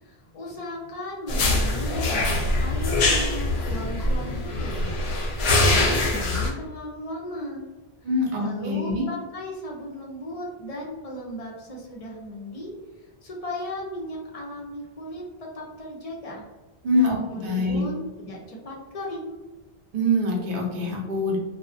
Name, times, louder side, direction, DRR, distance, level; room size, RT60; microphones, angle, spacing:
voice 1, 0.0-5.0 5.3-7.7 8.4-12.7 13.2-15.2 15.5-16.5 16.9-19.4, equal, 45° left, -2 dB, 0.5 m, -36 dB
sound 1, 1.3-6.5, left 2 dB, 85° left, 0.8 m, -23 dB
voice 2, 8.0-9.0 16.8-17.2 17.4-17.8 19.9-21.4, left 1 dB, 60° right, -2 dB, 0.7 m, -24 dB
2.4 x 2.0 x 2.5 m, 1.2 s
omnidirectional pair, 1.0 m